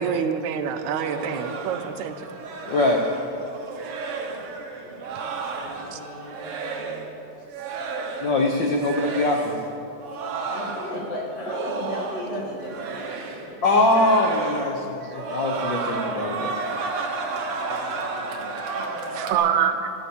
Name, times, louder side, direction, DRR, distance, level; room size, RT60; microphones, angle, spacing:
voice 1, 0.0-2.2 5.9-6.0 12.9-13.3 15.0-15.4 15.7-16.2 16.6-16.9 19.1-19.9, right 8 dB, 75° right, 8 dB, 2.0 m, -27 dB
voice 2, 0.7-1.5 4.8-7.1 10.5-13.1 13.5-13.8 17.4-19.5, left 1 dB, 55° left, -2 dB, 2.7 m, -37 dB
sound 1, 1.0-7.1 7.5-8.5 8.8-9.5 10.0-12.4 12.6-13.5 13.9-14.8 15.1-19.3, right 4 dB, 55° right, 1.9 m, -32 dB
voice 3, 2.6-3.1 8.2-9.6 13.6-16.6, left 2 dB, 75° left, 2 dB, 1.0 m, -22 dB
14.0 x 13.0 x 7.0 m, 2.8 s
omnidirectional pair, 3.6 m